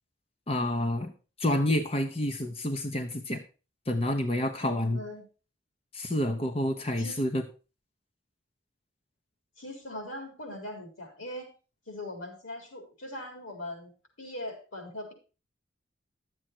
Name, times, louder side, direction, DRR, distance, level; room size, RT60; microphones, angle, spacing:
voice 1, 0.5-1.1 1.4-3.4 3.9-5.0 5.9-7.4, left 1 dB, 30° left, 5 dB, 1.0 m, -28 dB
voice 2, 4.6-5.2 7.0-7.2 9.6-11.5 11.9-15.1, left 1 dB, 90° left, 4 dB, 4.3 m, -41 dB
12.0 x 7.7 x 4.5 m, 0.34 s
head